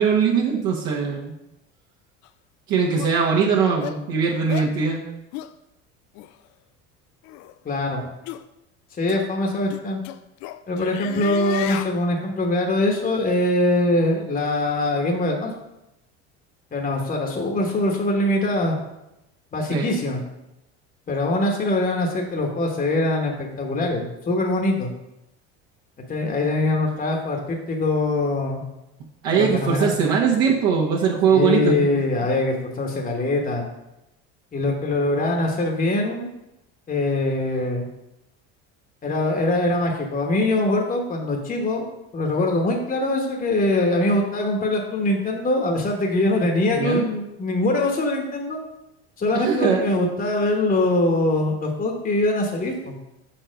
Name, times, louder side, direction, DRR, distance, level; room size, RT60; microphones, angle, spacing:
voice 1, 0.0-1.3 2.7-5.0 19.7-19.9 29.2-31.9 46.7-47.1 49.3-49.9, right 6 dB, 65° right, -3 dB, 1.3 m, -21 dB
sound 1, 2.2-2.3 3.0-3.2 3.8-4.0 4.5-4.7 5.3-5.5 6.2-6.3 7.2-7.5 8.3-8.4 9.1-9.2 9.7-12.0, left 12 dB, 60° left, 0.5 m, -33 dB
voice 2, 7.6-8.1 9.0-10.0 10.7-15.5 16.7-18.8 19.5-20.2 21.1-24.9 26.1-28.6 29.3-29.9 31.3-33.6 34.5-36.3 36.9-37.9 39.0-48.6 49.2-53.0, left 2 dB, 25° left, 1 dB, 1.1 m, -23 dB
5.6 x 4.4 x 5.1 m, 0.91 s
supercardioid pair, 85°, 33 cm